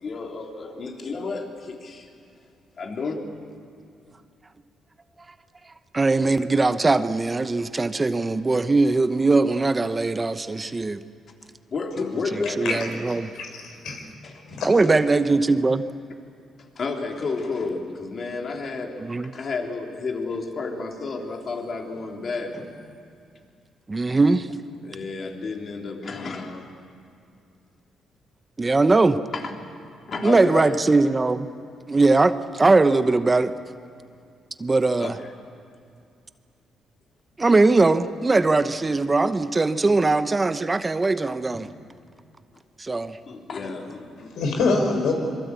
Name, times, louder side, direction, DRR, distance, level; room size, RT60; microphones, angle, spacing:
voice 1, 0.0-2.0 2.8-3.2 11.7-12.9 14.2-14.3 16.8-19.0 19.3-22.7 24.1-24.2 24.8-26.6 30.1-30.8 35.0-35.1 43.3-44.3, left 4 dB, 50° left, 2 dB, 3.4 m, -31 dB
voice 2, 5.9-11.0 12.3-13.3 14.6-15.8 19.0-19.3 23.9-24.5 28.6-29.2 30.2-31.5 31.9-33.5 34.6-35.2 37.4-41.7 42.8-43.2, right 3 dB, 25° right, 11 dB, 0.9 m, -20 dB
voice 3, 12.6-14.0 14.5-14.7 44.3-45.1, left 3 dB, 75° left, 3 dB, 5.3 m, -25 dB
26.0 x 23.0 x 8.4 m, 2.4 s
cardioid pair, 90°, 0 cm